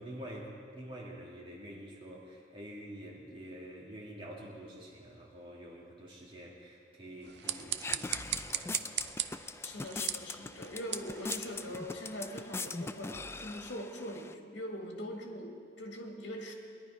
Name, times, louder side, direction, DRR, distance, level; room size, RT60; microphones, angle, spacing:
voice 1, 0.0-9.0, right 1 dB, 30° right, -4 dB, 2.8 m, -47 dB
sound 1, 7.2-12.5, right 11 dB, 65° right, 0.5 m, -39 dB
sound 2, 7.4-14.3, left 3 dB, 15° left, 0.4 m, -42 dB
voice 2, 9.6-16.5, equal, 80° left, 1 dB, 1.9 m, -42 dB
20.5 x 11.0 x 5.1 m, 2.2 s
head